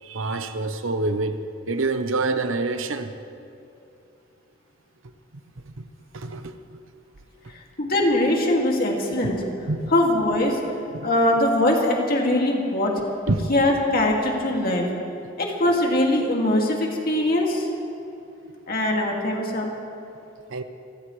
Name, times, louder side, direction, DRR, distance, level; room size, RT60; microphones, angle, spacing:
voice 1, 0.0-3.2 5.6-6.8 7.4-7.5 9.3-9.9 10.9-11.1 13.3-13.5 20.5-20.6, right 3 dB, 85° right, 8 dB, 0.9 m, -27 dB
voice 2, 7.8-9.4 9.9-10.6 11.0-12.9 13.5-14.9 15.4-17.7 18.7-19.7, left 1 dB, 50° left, -1 dB, 2.4 m, -21 dB
27.0 x 14.5 x 3.2 m, 2.8 s
head